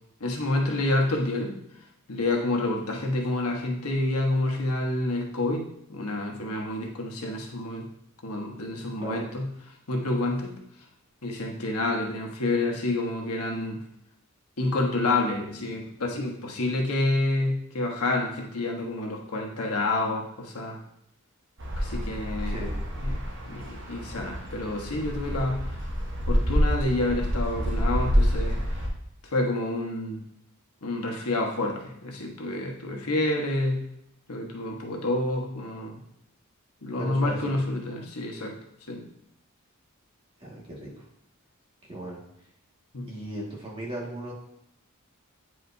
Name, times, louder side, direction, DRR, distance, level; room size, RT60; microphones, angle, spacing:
voice 1, 0.2-1.5 2.1-7.9 8.2-9.4 9.9-10.5 11.2-13.8 14.6-20.8 21.8-22.6 23.0-25.8 26.3-28.6 29.3-30.2 30.8-33.8 34.3-36.0 36.8-38.6 38.9-39.0 42.9-43.1, left 2 dB, 90° left, 1 dB, 1.2 m, -28 dB
sound 1, 21.6-28.9, equal, 55° right, 1.2 m, -27 dB
voice 2, 22.5-22.8 37.0-37.6 40.4-41.0 41.9-42.2 43.1-44.3, right 1 dB, 25° right, -4 dB, 1.8 m, -36 dB
9.2 x 4.9 x 2.7 m, 0.76 s
head